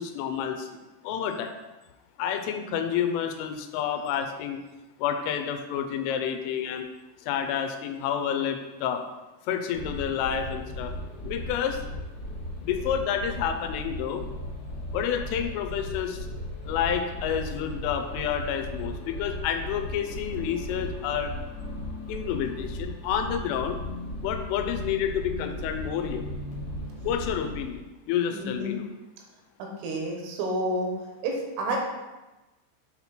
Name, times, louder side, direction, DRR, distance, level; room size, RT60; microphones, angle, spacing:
voice 1, 0.0-1.6 2.2-4.6 5.0-6.9 7.2-9.0 9.4-10.9 11.2-11.8 12.6-14.3 14.9-16.3 16.6-21.3 22.1-23.8 24.2-26.2 27.0-28.9, left 8 dB, 85° left, 6 dB, 3.1 m, -29 dB
sound 1, 9.7-27.6, left 1 dB, 60° left, 2.8 m, -36 dB
voice 2, 28.3-28.8 29.8-30.9 31.2-31.8, right 1 dB, 80° right, 0 dB, 3.7 m, -29 dB
8.6 x 4.2 x 4.3 m, 1.1 s
omnidirectional pair, 5.7 m